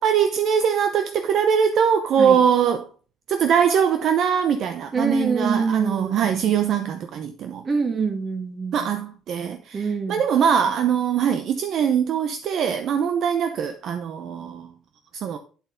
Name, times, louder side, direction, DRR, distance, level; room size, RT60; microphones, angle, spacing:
voice 1, 0.0-2.9 3.3-7.6 8.7-14.7 15.1-15.4, right 7 dB, 55° right, 0.7 m, -22 dB
voice 2, 4.9-6.2 7.6-8.9 9.7-10.2, right 4 dB, 30° right, 1.9 m, -25 dB
8.3 x 8.0 x 3.9 m
cardioid pair, 130°, 0 cm